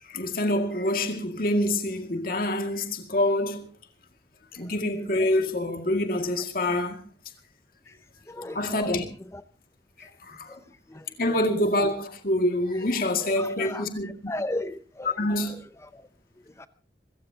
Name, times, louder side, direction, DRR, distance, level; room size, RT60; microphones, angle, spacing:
voice 1, 0.0-3.7 4.5-7.0 8.5-9.1 10.0-10.6 11.2-14.3 15.2-15.5, left 1 dB, 50° left, 2.1 m, -26 dB
voice 2, 8.3-9.0 9.3-9.4 10.5-10.6 10.9-11.4 13.2-15.5 15.8-16.1 16.5-16.7, left 1 dB, 15° left, 0.6 m, -37 dB
26.0 x 15.0 x 2.8 m
head